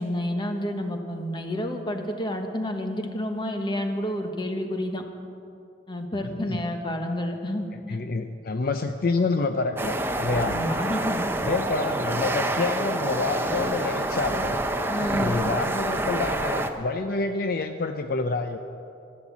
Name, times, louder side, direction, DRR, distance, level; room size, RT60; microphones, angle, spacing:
voice 1, 0.0-5.0 5.9-8.0 10.3-11.3 14.9-15.4, left 1 dB, 25° left, 5 dB, 1.2 m, -30 dB
voice 2, 6.2-6.6 7.9-10.6 11.4-14.6 15.2-18.6, left 3 dB, 55° left, 7 dB, 0.5 m, -28 dB
sound 1, 9.8-16.7, right 1 dB, 15° right, 0.7 m, -27 dB
12.5 x 12.0 x 7.2 m, 2.6 s
head